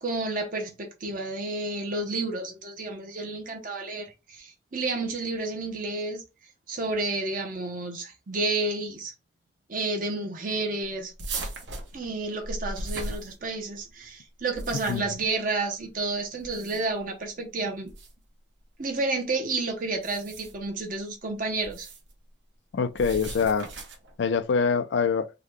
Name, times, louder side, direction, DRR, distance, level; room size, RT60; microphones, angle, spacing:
voice 1, 0.0-6.2 6.7-9.1 9.7-11.1 11.9-17.9 18.8-21.9, right 3 dB, 50° right, 0.8 m, -30 dB
sound 1, 11.2-13.8 14.4-15.2 16.4-17.0 17.9-18.1 19.9-20.7 21.6-22.1 23.0-24.1, right 2 dB, 85° right, 1.0 m, -37 dB
voice 2, 22.7-23.7 24.2-25.3, left 5 dB, 75° left, 0.4 m, -24 dB
3.7 x 2.2 x 3.1 m
head